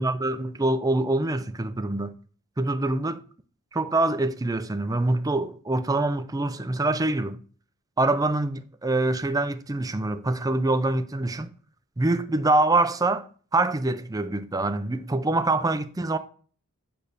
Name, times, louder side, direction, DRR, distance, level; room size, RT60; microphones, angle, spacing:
voice 1, 0.0-2.2 2.6-3.2 3.7-7.4 8.0-11.5 12.0-13.3 13.5-16.2, right 2 dB, 15° right, 0.5 m, -25 dB
8.6 x 3.4 x 6.5 m
head